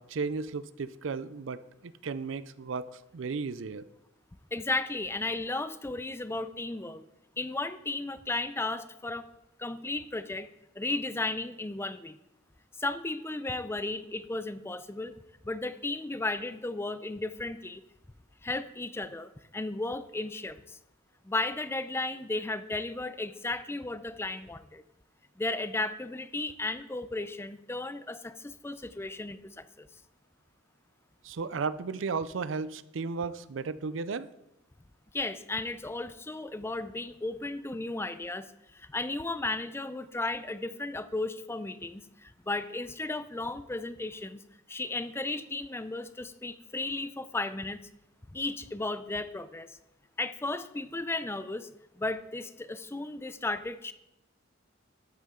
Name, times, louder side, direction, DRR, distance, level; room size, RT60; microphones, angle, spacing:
voice 1, 0.0-3.9 31.2-34.3, right 4 dB, 75° right, 16 dB, 0.5 m, -34 dB
voice 2, 4.5-7.0 7.4-9.3 9.6-10.5 10.8-12.2 12.8-15.2 15.4-17.8 18.4-20.8 21.2-24.8 25.4-29.9 35.1-44.4 44.7-47.8 48.3-49.8 50.2-51.7 51.9-53.9, left 2 dB, 15° left, 13 dB, 0.4 m, -34 dB
13.0 x 8.4 x 3.8 m, 0.88 s
head